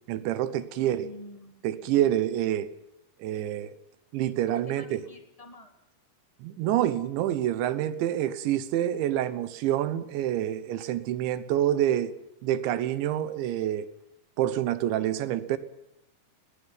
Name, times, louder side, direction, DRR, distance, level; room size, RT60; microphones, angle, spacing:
voice 1, 0.1-1.1 1.6-2.7 3.2-3.7 4.1-5.0 6.4-12.1 12.4-13.9 14.4-15.6, right 12 dB, 85° right, 3.5 m, -27 dB
voice 2, 0.8-2.1 4.5-5.7, left 1 dB, 20° left, 0.9 m, -47 dB
21.0 x 18.0 x 9.0 m
omnidirectional pair, 5.1 m